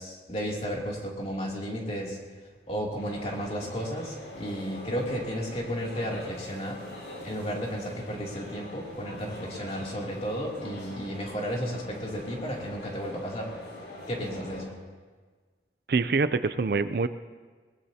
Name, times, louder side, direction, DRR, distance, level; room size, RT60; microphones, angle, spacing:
voice 1, 0.0-2.2 2.7-6.8 7.2-13.5 14.1-14.8, equal, 35° left, -2 dB, 2.9 m, -33 dB
sound 1, 3.0-14.6, left 1 dB, 90° left, 6.6 m, -43 dB
voice 2, 15.9-17.1, right 4 dB, 55° right, 12 dB, 0.4 m, -25 dB
21.5 x 20.5 x 2.9 m, 1.4 s
head